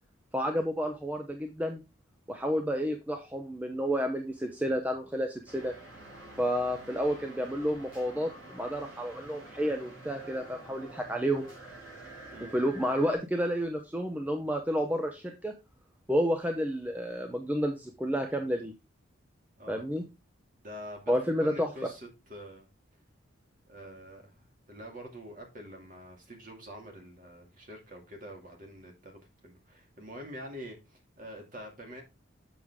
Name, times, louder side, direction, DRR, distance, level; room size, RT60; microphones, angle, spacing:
voice 1, 0.3-1.8 2.3-5.8 6.4-11.5 12.5-15.5 16.1-18.7 19.7-20.0 21.1-21.7, equal, 10° right, 0.6 m, -30 dB
sound 1, 5.5-13.2, right 2 dB, 60° right, 4.5 m, -48 dB
voice 2, 20.6-21.1 21.4-22.7 23.7-32.0, equal, 40° right, 2.3 m, -46 dB
7.0 x 6.4 x 3.5 m
head